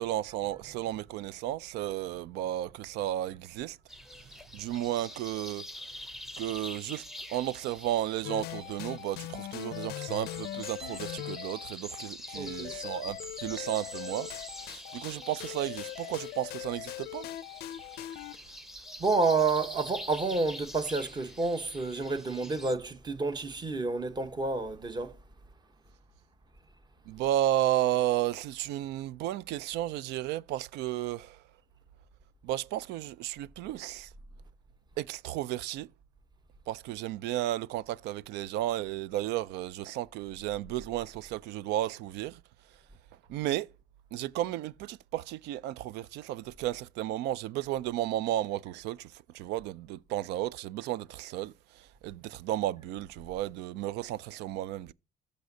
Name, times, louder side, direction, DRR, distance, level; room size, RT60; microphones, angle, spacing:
voice 1, 0.0-3.8 4.5-5.6 6.4-7.0 7.3-14.3 14.6-17.3 27.1-31.4 32.4-34.1 35.0-35.9 36.7-42.4 43.3-43.7 44.1-51.5 51.8-54.9, right 13 dB, 85° right, 0.4 m, -33 dB
sound 1, 3.9-22.7, left 1 dB, ahead, 0.8 m, -45 dB
sound 2, 8.2-18.4, left 15 dB, 70° left, 0.4 m, -41 dB
voice 2, 12.4-12.7 19.0-25.1, right 3 dB, 25° right, 1.0 m, -29 dB
14.0 x 5.2 x 2.7 m
cardioid pair, 110°, 17 cm